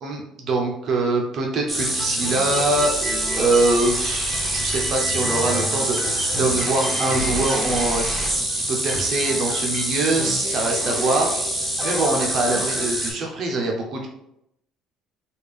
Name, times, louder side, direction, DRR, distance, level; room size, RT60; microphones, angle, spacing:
voice 1, 0.0-11.4 11.8-14.1, right 2 dB, 40° right, 1 dB, 0.5 m, -24 dB
sound 1, 1.7-13.1, right 1 dB, 10° right, 0.7 m, -25 dB
3.4 x 2.3 x 3.3 m, 0.79 s
cardioid pair, 165°, 0 cm